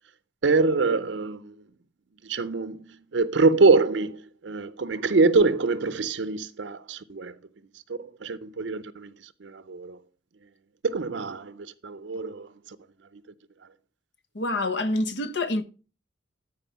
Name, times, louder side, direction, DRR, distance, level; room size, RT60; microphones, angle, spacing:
voice 1, 0.4-1.5 2.2-7.3 7.9-9.1 9.4-10.0 10.8-12.8 13.1-13.2, right 3 dB, 75° right, 0.6 m, -24 dB
voice 2, 14.3-15.6, left 2 dB, 70° left, 1.2 m, -26 dB
13.5 x 4.9 x 5.7 m
head